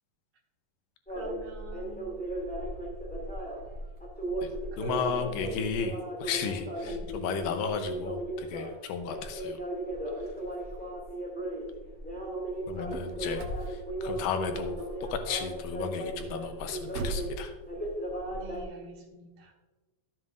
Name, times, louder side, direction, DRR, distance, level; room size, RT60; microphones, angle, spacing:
sound 1, 1.1-18.6, right 1 dB, 5° left, 1.4 m, -36 dB
voice 1, 1.1-2.1 4.7-5.6 6.8-7.0 18.3-19.5, right 3 dB, 45° right, 0 dB, 1.5 m, -44 dB
voice 2, 4.8-9.6 12.7-14.8 15.1-17.5, left 6 dB, 90° left, 7 dB, 2.4 m, -34 dB
sound 2, 5.6-9.3, left 5 dB, 75° left, 2.1 m, -46 dB
sound 3, 12.4-17.4, right 3 dB, 80° right, 1.2 m, -42 dB
13.0 x 7.4 x 2.5 m, 1.2 s
omnidirectional pair, 3.8 m